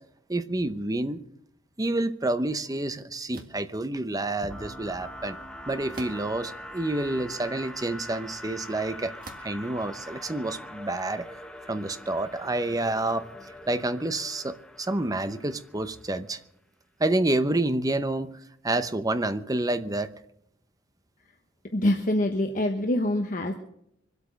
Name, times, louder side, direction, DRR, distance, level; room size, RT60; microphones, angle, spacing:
voice 1, 0.3-1.2 1.8-5.4 5.7-9.1 9.4-11.3 11.7-13.3 13.7-16.4 17.0-20.1, right 2 dB, 20° right, 0.8 m, -28 dB
sound 1, 3.3-3.7 5.9-6.5 7.2-7.3 9.2-9.6, right 3 dB, 45° right, 1.8 m, -45 dB
sound 2, 4.4-16.2, left 1 dB, 5° left, 1.0 m, -43 dB
voice 2, 21.7-23.5, left 1 dB, 40° left, 1.1 m, -25 dB
24.5 x 8.4 x 6.4 m
head